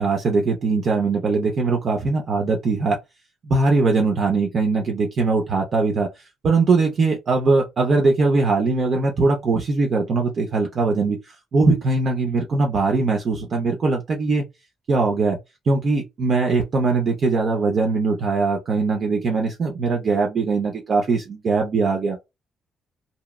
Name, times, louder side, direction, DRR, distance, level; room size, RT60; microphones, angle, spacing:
voice 1, 0.0-3.0 3.4-6.1 6.4-14.5 14.9-15.4 15.7-22.2, right 3 dB, 50° right, 0.6 m, -21 dB
2.9 x 2.1 x 2.3 m
cardioid pair, 90°, 0 cm